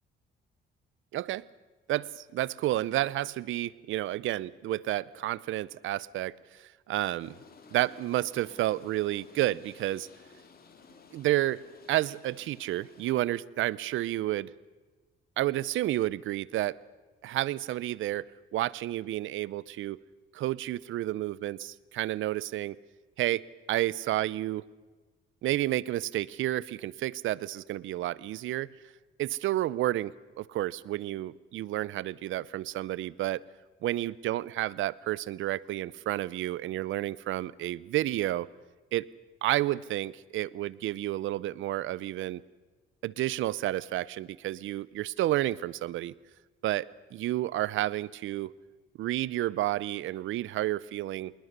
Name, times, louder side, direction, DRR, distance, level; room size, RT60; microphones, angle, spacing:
voice 1, 1.1-1.5 1.9-7.4 7.7-10.1 11.1-11.6 11.9-14.5 15.4-16.8 17.2-18.3 18.5-20.0 20.3-22.8 23.2-24.6 25.4-28.7 29.2-33.4 33.8-38.5 38.9-39.1 39.4-42.4 43.0-46.1 46.6-48.5 49.0-51.3, right 15 dB, 80° right, 22 dB, 0.7 m, -31 dB
sound 1, 7.2-13.1, left 4 dB, 50° left, 3.5 m, -55 dB
26.5 x 20.5 x 6.7 m, 1.3 s
cardioid pair, 90°, 20 cm